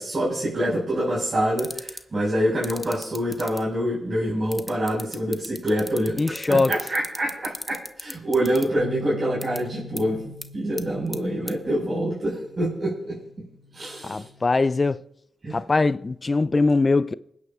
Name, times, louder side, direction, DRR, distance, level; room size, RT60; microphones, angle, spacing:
voice 1, 0.0-10.2 10.5-13.2 13.7-14.3 15.4-15.6, right 1 dB, 45° right, 5.0 m, -26 dB
sound 1, 1.6-2.0 2.6-3.6 4.5-8.6 9.4-9.6 10.0-10.1 10.4-10.5 10.8-11.2 11.5-11.6, equal, ahead, 0.9 m, -34 dB
voice 2, 6.2-6.8 14.0-15.0 15.5-17.1, left 3 dB, 40° left, 0.4 m, -21 dB
sound 2, 8.8-15.0, left 1 dB, 80° right, 3.2 m, -43 dB
26.5 x 9.5 x 2.4 m
supercardioid pair, 45°, 0 cm